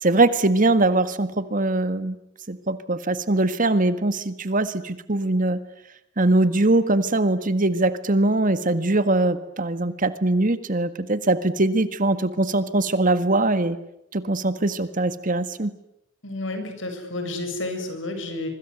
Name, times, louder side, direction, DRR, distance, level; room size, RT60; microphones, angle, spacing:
voice 1, 0.0-2.2 2.5-5.6 6.2-13.8 14.1-15.7, right 2 dB, 45° right, 12 dB, 1.8 m, -22 dB
voice 2, 16.2-18.5, left 2 dB, 80° left, 6 dB, 7.6 m, -30 dB
26.5 x 24.5 x 8.1 m, 0.78 s
head